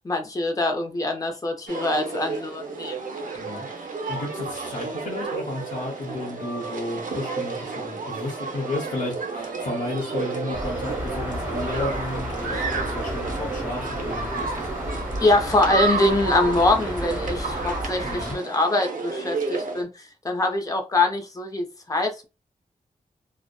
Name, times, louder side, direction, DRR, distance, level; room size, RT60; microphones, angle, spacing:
voice 1, 0.0-3.0 15.2-22.2, left 2 dB, 25° left, 0.5 m, -24 dB
sound 1, 1.7-19.8, right 4 dB, 70° right, 0.6 m, -31 dB
voice 2, 3.3-3.7 4.1-15.1 18.0-18.4, left 2 dB, 70° left, 0.8 m, -33 dB
sound 2, 10.5-18.4, equal, 15° right, 1.0 m, -32 dB
2.7 x 2.0 x 2.2 m
wide cardioid pair, 130°, 14 cm